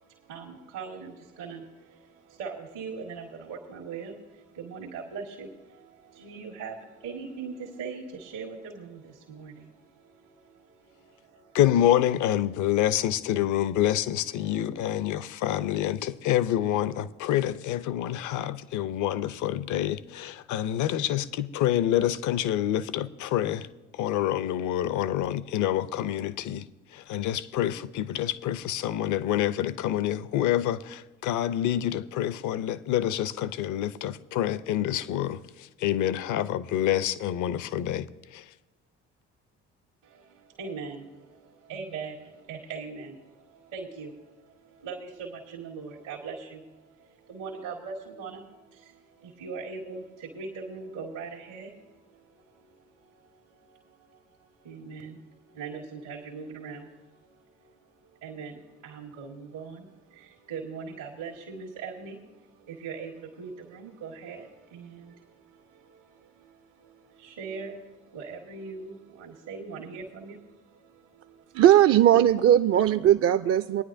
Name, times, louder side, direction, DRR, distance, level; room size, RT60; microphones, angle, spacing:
voice 1, 0.0-11.6 40.0-71.6, right 5 dB, 80° right, 1.6 m, -41 dB
voice 2, 11.5-23.7 24.0-26.6 26.9-35.4 35.8-38.1 38.3-38.4, left 12 dB, 60° left, 0.6 m, -27 dB
voice 3, 71.5-73.8, right 11 dB, 45° right, 0.4 m, -19 dB
22.0 x 9.7 x 2.6 m
hypercardioid pair, 55°, 34 cm